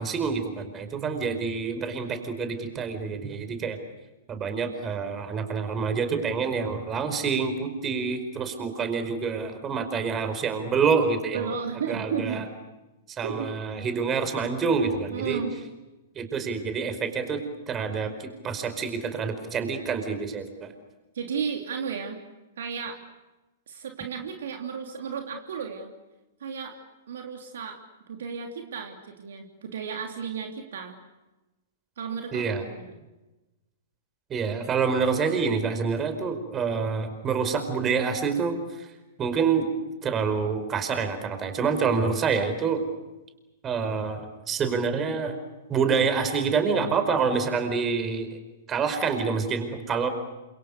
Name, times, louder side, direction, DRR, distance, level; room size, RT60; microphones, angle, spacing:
voice 1, 0.0-3.8 4.3-12.4 13.1-15.4 16.1-20.7 32.3-32.6 34.3-38.9 39.2-39.7 40.0-42.8 43.6-45.4 45.7-48.3 48.7-50.1, right 5 dB, 25° right, 8 dB, 5.0 m, -27 dB
voice 2, 11.3-12.5 13.2-13.5 15.1-15.6 21.1-22.2 22.6-23.0 23.7-25.9 26.4-26.8 27.1-27.8 28.1-31.0 32.0-33.0, right 6 dB, 65° right, 4 dB, 3.1 m, -33 dB
29.5 x 27.0 x 6.8 m, 1.1 s
figure-of-eight pair, 105°, 0 cm